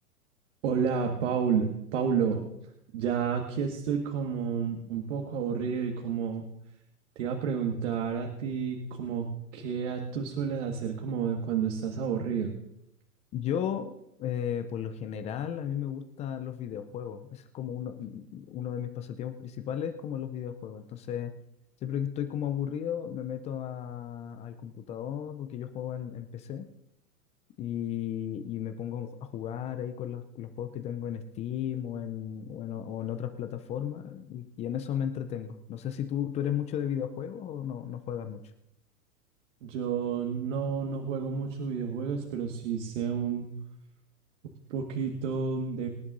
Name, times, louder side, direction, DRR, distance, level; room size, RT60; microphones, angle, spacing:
voice 1, 0.6-2.4 2.9-6.4 7.2-9.3 9.5-12.5 39.6-43.5 44.7-45.9, right 6 dB, 50° right, 3 dB, 1.7 m, -30 dB
voice 2, 13.3-13.9 14.2-21.3 21.8-26.7 27.6-38.4, left 9 dB, 15° left, 8 dB, 0.5 m, -34 dB
24.5 x 11.0 x 2.6 m, 0.81 s
figure-of-eight pair, 110°, 46 cm